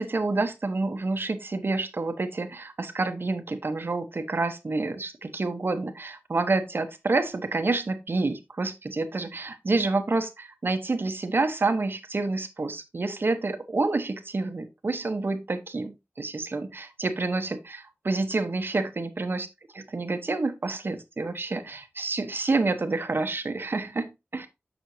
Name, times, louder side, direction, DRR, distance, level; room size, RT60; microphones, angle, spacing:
voice 1, 0.0-19.5 19.9-24.5, right 3 dB, 50° right, 1.0 m, -28 dB
7.5 x 6.1 x 2.7 m
wide cardioid pair, 75°, 5 cm